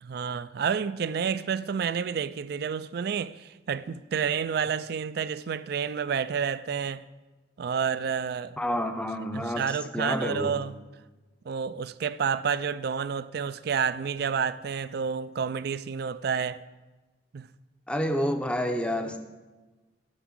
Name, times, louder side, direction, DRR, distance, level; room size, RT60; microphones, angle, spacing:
voice 1, 0.0-7.1 7.6-8.6 9.3-10.8 11.5-16.7 17.3-17.5, right 6 dB, 55° right, 0.3 m, -30 dB
voice 2, 8.6-10.5 17.9-19.2, equal, 5° left, 0.6 m, -29 dB
11.5 x 6.1 x 6.1 m
head